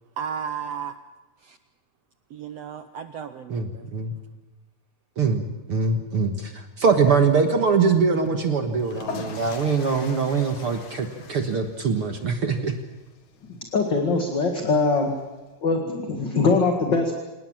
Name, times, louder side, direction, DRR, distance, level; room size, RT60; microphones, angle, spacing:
voice 1, 0.2-1.0 1.4-1.6 2.3-3.9, right 7 dB, 75° right, 9 dB, 1.5 m, -34 dB
voice 2, 3.5-4.1 5.2-12.8, right 5 dB, 50° right, 6 dB, 1.9 m, -23 dB
sound 1, 8.7-15.5, left 5 dB, 60° left, 3.4 m, -42 dB
voice 3, 13.7-15.1 15.6-17.1, left 3 dB, 40° left, 4 dB, 2.2 m, -22 dB
27.5 x 18.5 x 7.4 m, 1.2 s
omnidirectional pair, 4.0 m